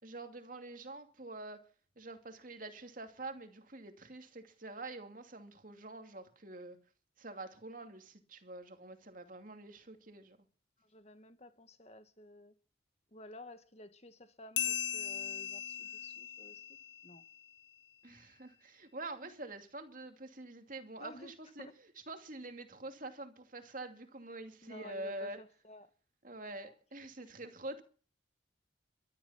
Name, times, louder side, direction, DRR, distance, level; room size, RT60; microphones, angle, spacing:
voice 1, 0.0-1.6 2.0-6.8 7.2-10.4 18.0-21.7 22.1-25.4 26.2-27.8, right 2 dB, 45° right, 2.6 m, -46 dB
voice 2, 10.8-12.5 13.1-16.8 17.0-17.3 21.0-21.3 21.6-21.7 24.6-25.9 26.4-26.7 27.2-27.3, left 1 dB, 35° left, 1.8 m, -53 dB
sound 1, 14.6-17.6, left 10 dB, 65° left, 0.6 m, -39 dB
14.5 x 13.5 x 5.8 m
head